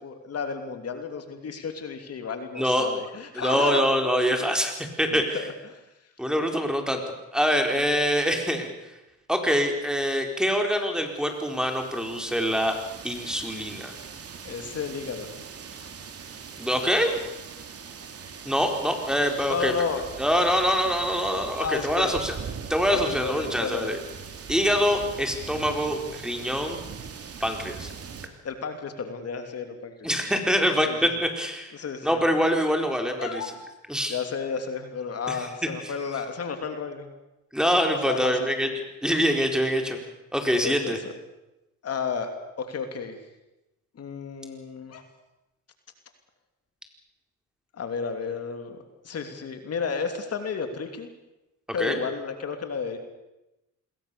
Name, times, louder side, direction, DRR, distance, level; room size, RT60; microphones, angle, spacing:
voice 1, 0.0-3.8 5.1-5.8 7.7-8.0 14.4-15.3 19.5-20.1 21.5-22.1 22.9-23.9 28.4-30.1 30.9-31.0 31.7-32.2 33.2-33.5 34.1-37.1 38.0-38.5 39.1-39.2 40.6-41.1 41.8-42.3 42.6-43.2 44.0-45.0 47.7-48.8 49.0-51.1 51.7-53.0, left 5 dB, 55° left, 6 dB, 3.0 m, -32 dB
voice 2, 2.6-2.9 3.3-5.4 6.2-7.0 7.3-8.7 9.3-12.8 13.0-13.9 16.6-17.2 18.4-19.7 20.2-22.3 22.7-24.0 24.5-26.8 27.4-27.9 30.0-31.7 32.0-33.4 33.9-34.1 35.3-35.5 37.5-38.7 39.0-40.0 40.3-41.0 51.8-52.0, equal, ahead, 3 dB, 4.3 m, -24 dB
sound 1, 11.2-28.3, right 6 dB, 50° right, 3.1 m, -41 dB
27.5 x 22.0 x 7.0 m, 0.96 s
cardioid pair, 90°, 30 cm